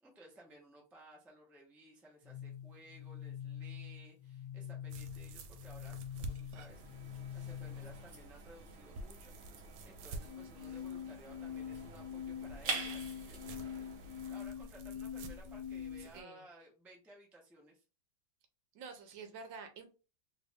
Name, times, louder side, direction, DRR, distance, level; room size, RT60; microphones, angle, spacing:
voice 1, 0.0-13.4 14.0-17.8, right 1 dB, ahead, -2 dB, 0.5 m, -58 dB
sound 1, 2.2-8.2 10.2-16.2, left 9 dB, 80° left, 1.4 m, -45 dB
sound 2, 4.9-16.2, right 2 dB, 90° right, 1.4 m, -51 dB
sound 3, 6.7-14.4, right 4 dB, 55° right, 0.9 m, -46 dB
voice 2, 16.0-16.4 18.7-19.9, right 5 dB, 70° right, 5 dB, 1.3 m, -48 dB
3.3 x 2.5 x 3.3 m, 0.33 s
omnidirectional pair, 2.2 m